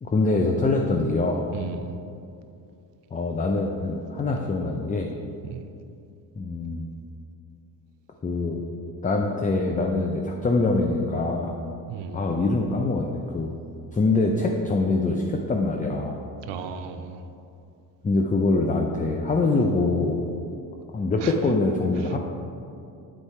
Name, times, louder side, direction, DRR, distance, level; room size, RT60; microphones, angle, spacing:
voice 1, 0.0-1.5 3.1-5.1 6.4-6.9 8.2-8.6 9.0-11.6 12.1-13.5 13.9-16.2 18.0-20.3 20.9-22.2, left 3 dB, 20° left, 2 dB, 0.5 m, -24 dB
voice 2, 1.5-1.9 5.4-5.7 11.9-12.2 16.5-17.2 21.2-21.3 22.0-22.2, right 6 dB, 70° right, 7 dB, 0.7 m, -35 dB
8.3 x 4.5 x 4.3 m, 2.6 s
cardioid pair, 85°, 45 cm